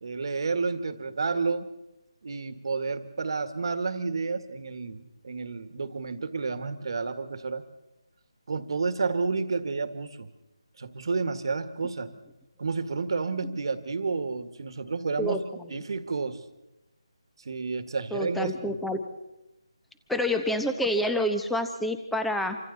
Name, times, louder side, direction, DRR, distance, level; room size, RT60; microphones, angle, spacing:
voice 1, 0.0-1.7 2.2-7.6 8.5-10.3 10.8-12.1 12.6-15.4 15.7-16.4 17.4-18.8, right 4 dB, 50° right, 10 dB, 1.7 m, -30 dB
voice 2, 18.1-19.0 20.1-22.6, left 1 dB, ahead, 7 dB, 0.9 m, -27 dB
28.0 x 25.0 x 4.1 m, 0.96 s
figure-of-eight pair, 170°, 3 cm